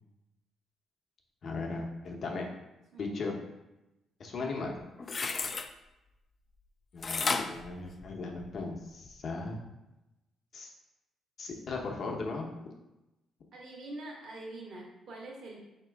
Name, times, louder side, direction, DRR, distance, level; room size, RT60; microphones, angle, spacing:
voice 1, 1.4-2.5 3.0-3.3 4.2-4.8 6.9-9.6 10.5-10.7 11.4-12.5, left 3 dB, 55° left, 1 dB, 0.8 m, -37 dB
voice 2, 2.9-3.4 5.1-5.2 13.5-15.6, right 2 dB, 65° right, -2 dB, 1.1 m, -45 dB
sound 1, 4.7-5.7 7.0-8.6 9.1-9.2, left 4 dB, 40° left, 0.3 m, -33 dB
4.2 x 2.9 x 3.4 m, 0.97 s
cardioid pair, 90°, 0 cm